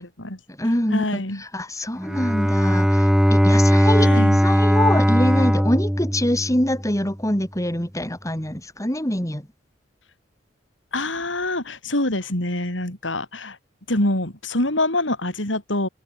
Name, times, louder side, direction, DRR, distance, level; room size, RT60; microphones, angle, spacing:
voice 1, 0.0-0.4 0.9-1.4 4.0-4.4 10.9-13.6 13.9-15.9, left 1 dB, 85° left, 5.7 m, -25 dB
voice 2, 0.6-9.5, left 1 dB, 15° left, 4.7 m, -24 dB
Bowed string instrument, 2.0-7.0, equal, 5° right, 3.1 m, -18 dB
head